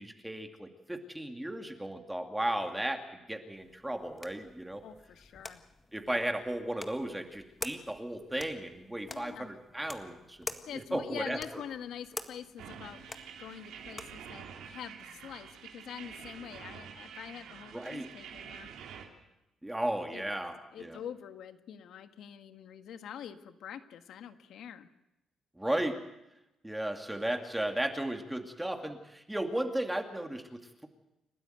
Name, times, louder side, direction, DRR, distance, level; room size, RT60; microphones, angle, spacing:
voice 1, 0.0-3.0 3.3-4.8 5.9-11.6 17.7-18.1 19.6-21.0 25.6-26.0 26.6-30.9, right 1 dB, 10° right, 5 dB, 2.5 m, -35 dB
sound 1, 3.5-14.3, left 2 dB, 20° left, 1.7 m, -47 dB
voice 2, 4.8-5.6 9.1-9.5 10.7-13.1 13.4-18.7 20.1-20.2 20.7-24.9, left 9 dB, 75° left, 9 dB, 1.6 m, -45 dB
sound 2, 12.6-19.0, right 7 dB, 85° right, 3.5 m, -47 dB
29.5 x 12.5 x 9.3 m, 0.92 s
cardioid pair, 90°, 0 cm